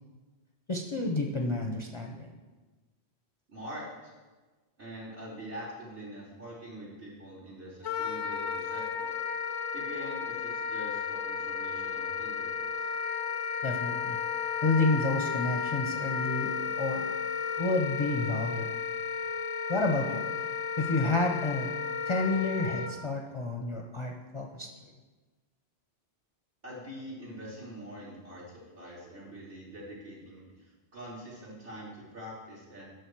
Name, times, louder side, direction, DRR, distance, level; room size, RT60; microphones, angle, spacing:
voice 1, 0.7-2.4 13.6-14.2 14.6-17.1 17.6-18.7 19.7-20.3 20.8-21.7 22.1-24.7, left 2 dB, 30° left, 2 dB, 0.7 m, -30 dB
voice 2, 3.5-4.1 4.8-9.2 9.7-13.0 26.6-32.8, equal, 60° right, -6 dB, 3.4 m, -44 dB
Wind instrument woodwind instrument, 7.8-22.9, left 6 dB, 90° left, 1.0 m, -33 dB
11.5 x 6.5 x 4.6 m, 1.3 s
omnidirectional pair, 1.1 m